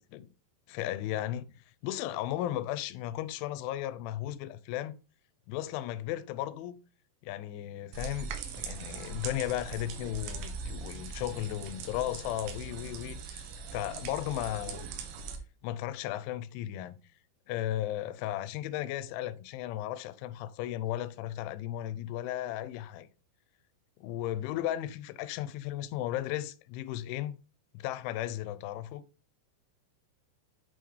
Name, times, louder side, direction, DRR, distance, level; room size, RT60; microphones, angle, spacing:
voice 1, 0.7-1.5 1.8-4.9 5.5-6.8 7.2-14.9 15.6-17.0 17.5-23.1 24.0-27.4 27.7-29.0, left 13 dB, 90° left, 3.0 m, -35 dB
sound 1, 7.9-15.4, right 5 dB, 90° right, 3.4 m, -41 dB
8.5 x 4.7 x 3.1 m
omnidirectional pair, 5.3 m